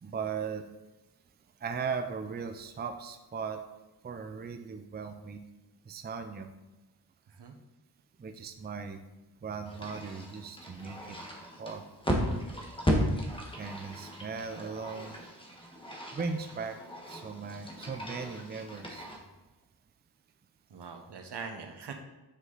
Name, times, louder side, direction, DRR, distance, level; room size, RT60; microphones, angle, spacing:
voice 1, 0.0-0.6 1.6-3.6 4.0-5.4 5.9-6.5 8.2-9.0 9.4-11.2 11.6-11.8 13.6-15.2 16.1-16.8 17.1-19.1, right 5 dB, 25° right, 7 dB, 0.4 m, -38 dB
sound 1, 9.6-19.2, equal, 15° left, 1.2 m, -35 dB
voice 2, 20.7-21.9, right 5 dB, 75° right, 5 dB, 1.1 m, -42 dB
7.6 x 6.4 x 3.9 m, 1.1 s
wide cardioid pair, 150°, 41 cm